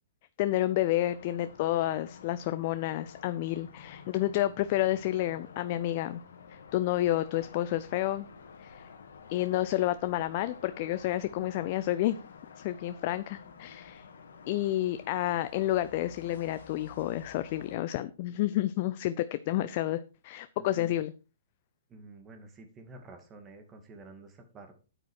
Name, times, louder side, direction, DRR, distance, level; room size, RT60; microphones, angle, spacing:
voice 1, 0.4-6.2 6.5-8.3 8.6-8.9 9.3-12.2 12.6-14.1 14.5-21.1, left 14 dB, 45° left, 13 dB, 0.6 m, -30 dB
sound 1, 1.0-17.8, left 6 dB, 65° left, 1.9 m, -50 dB
voice 2, 20.6-20.9 21.9-24.7, right 2 dB, 20° right, 6 dB, 2.6 m, -50 dB
9.1 x 8.9 x 4.7 m, 0.33 s
hypercardioid pair, 125°, 0 cm